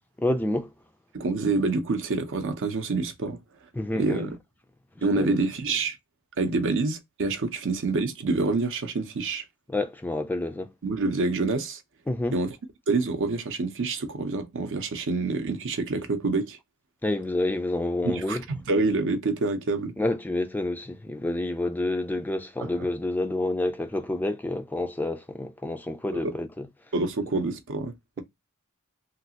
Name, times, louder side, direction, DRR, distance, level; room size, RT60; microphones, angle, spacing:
voice 1, 0.2-0.7 3.7-4.3 5.1-5.3 9.7-10.7 12.1-12.4 17.0-18.4 20.0-26.7, left 1 dB, 10° left, 0.3 m, -28 dB
voice 2, 1.1-3.4 4.0-4.4 5.0-6.0 6.4-9.4 10.8-11.8 12.3-12.5 12.9-16.6 18.0-20.0 22.6-22.9 26.1-26.3 26.9-28.2, right 3 dB, 60° right, 0.7 m, -27 dB
3.2 x 2.4 x 2.7 m
head